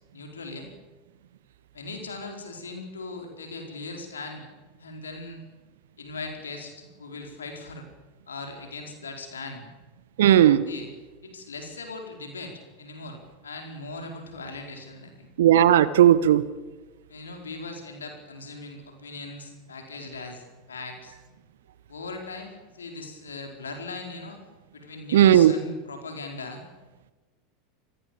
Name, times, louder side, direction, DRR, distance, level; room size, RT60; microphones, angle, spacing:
voice 1, 0.1-0.7 1.7-4.5 4.8-5.4 6.0-7.9 8.3-9.7 10.7-10.9 11.2-15.3 17.1-21.2 21.9-24.4 24.7-26.6, left 3 dB, 75° left, 4 dB, 4.7 m, -39 dB
voice 2, 10.2-10.7 15.4-16.5 25.1-25.5, right 11 dB, 65° right, 16 dB, 1.2 m, -16 dB
28.0 x 20.5 x 7.2 m, 1.2 s
figure-of-eight pair, 80°, 0 cm